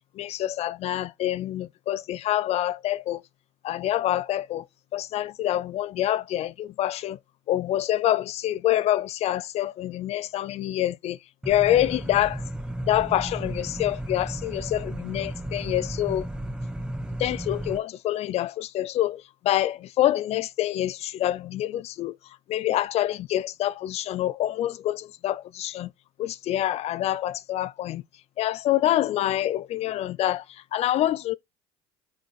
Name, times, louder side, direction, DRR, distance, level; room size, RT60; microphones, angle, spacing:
voice 1, 0.1-3.2 3.6-4.7 4.9-7.2 7.5-11.2 11.5-12.4 12.8-16.3 17.2-25.9 26.2-28.0 28.4-31.3, left 13 dB, 45° left, 0.4 m, -26 dB
sound 1, 11.4-17.8, right 1 dB, 5° right, 0.6 m, -34 dB
5.3 x 3.8 x 2.4 m
hypercardioid pair, 70°, 15 cm